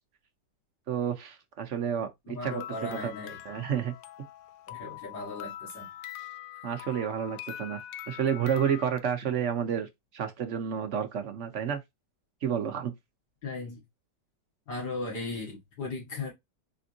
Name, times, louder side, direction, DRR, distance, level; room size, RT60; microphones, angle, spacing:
voice 1, 0.9-2.6 3.0-3.1 3.4-3.9 6.6-9.9 10.1-11.8 12.4-12.9, right 8 dB, 55° right, 0.9 m, -30 dB
voice 2, 2.3-3.4 4.7-5.9 13.4-13.8 14.7-16.3, left 3 dB, 65° left, 2.6 m, -37 dB
sound 1, 2.4-9.0, left 13 dB, 85° left, 1.2 m, -43 dB
4.3 x 3.7 x 2.7 m
omnidirectional pair, 1.9 m